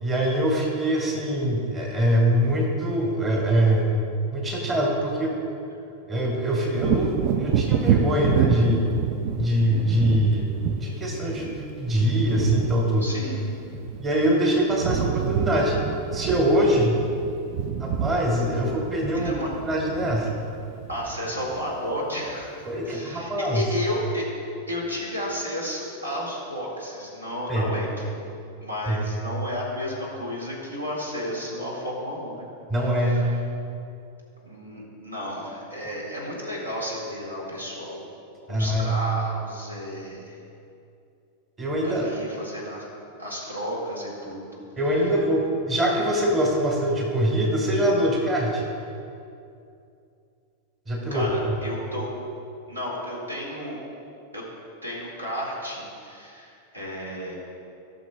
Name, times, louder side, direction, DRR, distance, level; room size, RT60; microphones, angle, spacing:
voice 1, 0.0-3.9 4.3-5.3 6.1-8.9 9.3-10.5 10.8-13.1 14.0-15.8 16.1-17.0 17.8-20.3 22.7-23.7 27.5-27.7 28.9-29.0 32.7-33.3 38.5-38.9 41.6-42.2 44.8-48.7 50.9-51.6, equal, 20° right, -1 dB, 1.5 m, -23 dB
Wind / Thunder, 6.8-14.4 14.6-21.9 22.3-22.4, right 7 dB, 45° right, 0.4 m, -28 dB
voice 2, 13.0-13.4 19.1-19.5 20.9-22.5 22.9-24.3 24.7-28.3 28.6-32.5 32.7-33.2 34.4-38.1 38.5-40.4 41.8-42.8 43.2-44.6 51.1-52.1 52.7-53.8 54.3-54.4 54.8-57.3, equal, 80° right, -3 dB, 2.0 m, -32 dB
17.0 x 6.4 x 2.3 m, 2.6 s
figure-of-eight pair, 90°, 0 cm